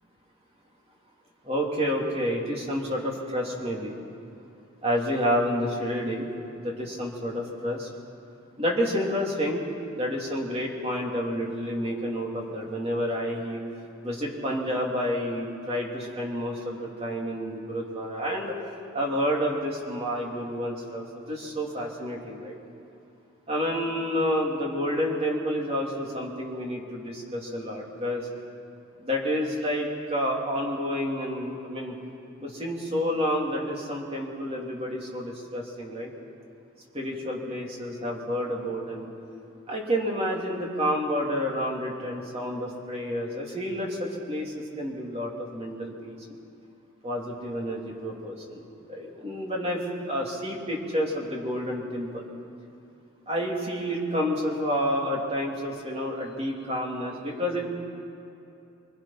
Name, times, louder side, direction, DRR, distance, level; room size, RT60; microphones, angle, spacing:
voice 1, 1.4-3.9 4.8-6.3 6.6-7.9 8.6-9.6 9.9-13.6 14.0-18.5 18.9-22.6 23.5-28.3 29.0-32.0 32.4-36.1 36.9-39.1 39.7-46.2 47.0-48.6 48.9-52.3 53.3-57.7, equal, 25° right, -2 dB, 3.2 m, -29 dB
26.0 x 23.5 x 5.9 m, 2.8 s
head